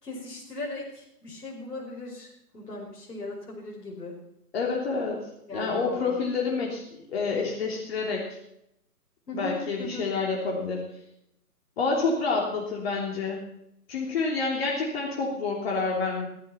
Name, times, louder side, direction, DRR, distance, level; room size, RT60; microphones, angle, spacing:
voice 1, 0.0-4.2 5.5-6.2 9.3-10.1, left 2 dB, 85° left, -3 dB, 5.4 m, -38 dB
voice 2, 4.5-8.4 9.3-10.8 11.8-13.4 13.9-16.3, left 4 dB, 40° left, -2 dB, 3.3 m, -28 dB
15.0 x 13.5 x 5.8 m, 0.80 s
hypercardioid pair, 150°, 47 cm